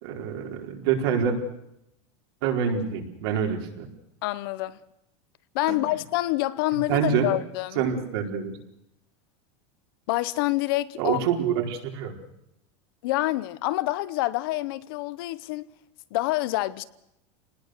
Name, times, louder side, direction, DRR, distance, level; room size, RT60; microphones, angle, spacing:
voice 1, 0.0-1.4 2.4-3.9 5.7-5.8 6.9-7.3 7.8-8.6 11.0-12.1, right 7 dB, 55° right, 4.6 m, -26 dB
voice 2, 4.2-4.8 5.5-7.9 10.1-11.2 13.0-15.7 16.1-16.8, left 18 dB, 50° left, 0.8 m, -27 dB
28.0 x 19.5 x 6.7 m
supercardioid pair, 175°, 15 cm